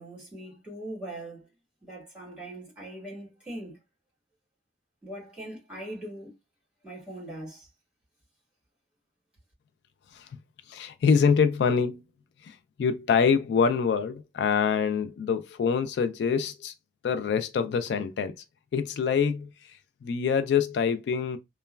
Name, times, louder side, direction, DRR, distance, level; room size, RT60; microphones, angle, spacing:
voice 1, 0.0-1.5 1.8-3.8 5.0-6.3 6.8-7.7, right 1 dB, 5° right, 1.7 m, -41 dB
voice 2, 10.7-12.0 12.4-16.7 17.0-18.4 18.7-21.4, left 6 dB, 70° left, 0.3 m, -25 dB
3.0 x 2.2 x 2.2 m
head